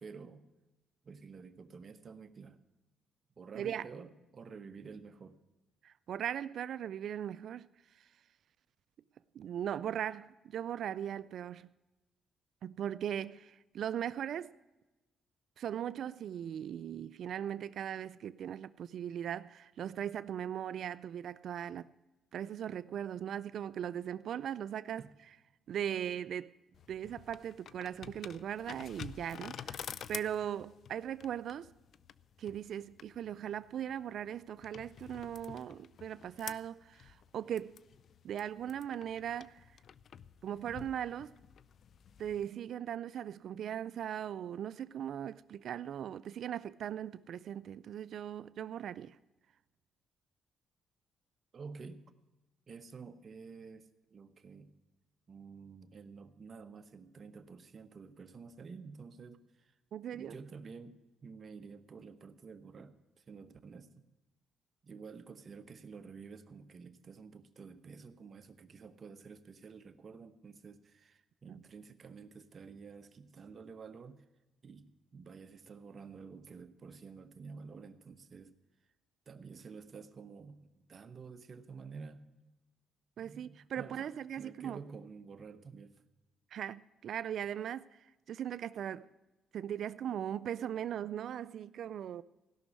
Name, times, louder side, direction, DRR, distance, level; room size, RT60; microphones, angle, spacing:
voice 1, 0.0-0.5 1.0-2.6 3.4-5.4 25.0-25.1 51.5-52.0 52.7-54.7 55.3-59.8 60.1-64.1 64.8-74.2 74.6-78.5 79.3-82.3 83.2-84.1 84.4-86.0, right 5 dB, 45° right, 1.1 m, -50 dB
voice 2, 5.8-7.7 8.0-8.1 9.3-11.7 12.6-14.5 15.6-21.9 22.3-25.0 25.7-26.6 26.9-29.8 30.1-31.7 32.4-37.8 38.2-39.6 40.4-41.4 42.2-49.2 59.9-60.4 71.5-71.6 83.2-84.8 86.5-87.9 88.3-89.1 89.5-92.2, right 9 dB, 65° right, 0.4 m, -39 dB
sound 1, 26.7-42.4, left 8 dB, 60° left, 0.5 m, -50 dB
16.5 x 6.3 x 9.6 m
cardioid pair, 90°, 0 cm